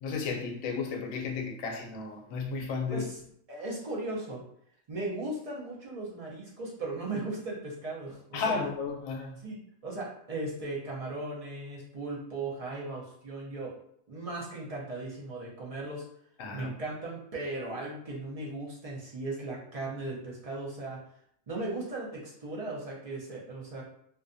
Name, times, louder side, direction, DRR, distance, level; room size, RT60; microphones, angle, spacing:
voice 1, 0.0-3.1 8.3-9.4 16.4-16.7, left 4 dB, 80° left, 2 dB, 1.0 m, -33 dB
voice 2, 3.5-4.4 4.9-8.7 9.4-13.7 14.1-16.1 16.5-21.0 21.5-23.8, right 2 dB, 45° right, -5 dB, 0.4 m, -37 dB
2.5 x 2.2 x 2.5 m, 0.69 s
omnidirectional pair, 1.4 m